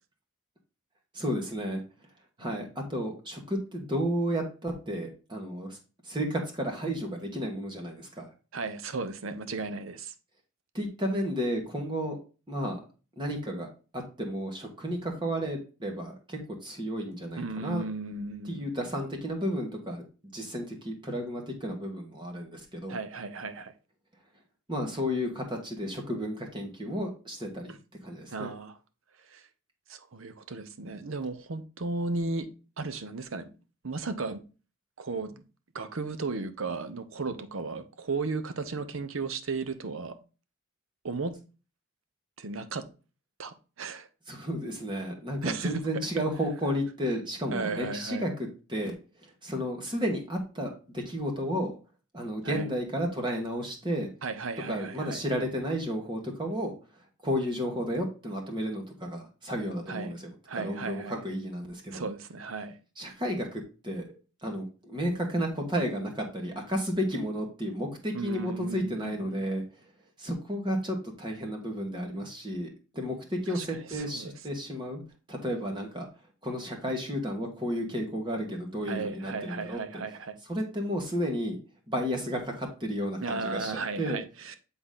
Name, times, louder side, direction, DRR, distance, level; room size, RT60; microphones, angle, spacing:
voice 1, 1.1-1.8 2.4-5.8 6.0-8.3 10.7-12.2 12.5-12.8 13.2-13.7 13.9-17.8 18.4-20.1 20.3-23.0 24.7-27.8 28.0-28.5 44.3-48.3 48.7-49.0 49.2-51.7 52.1-54.1 54.7-56.7 57.2-62.1 63.0-64.0 64.4-69.6 70.2-75.0 75.3-76.1 76.4-79.8 80.5-81.6 81.9-84.2, equal, 20° right, 1.4 m, -32 dB
voice 2, 8.5-10.1 17.4-18.7 22.9-23.7 27.7-27.8 28.3-28.8 29.3-29.4 29.9-32.5 32.8-33.5 33.8-34.4 35.0-35.4 35.7-40.2 41.0-41.4 42.4-42.9 43.4-44.1 45.4-45.7 47.5-48.2 52.4-52.7 54.2-55.2 59.9-60.1 60.5-61.2 61.9-62.8 68.1-69.4 73.5-74.3 78.9-80.4 83.2-84.6, right 3 dB, 75° right, 0.8 m, -35 dB
8.0 x 4.0 x 3.7 m
head